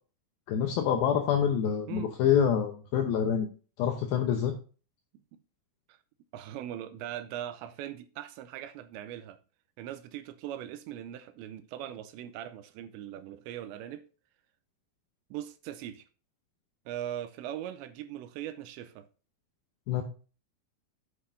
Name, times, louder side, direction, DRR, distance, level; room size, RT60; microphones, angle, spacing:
voice 1, 0.5-3.5 3.8-4.5 19.9-20.0, left 8 dB, 80° left, 2.2 m, -26 dB
voice 2, 6.3-9.4 9.8-14.0 15.3-16.0 16.9-19.1, right 11 dB, 80° right, 2.7 m, -40 dB
9.7 x 8.3 x 2.6 m
omnidirectional pair, 5.4 m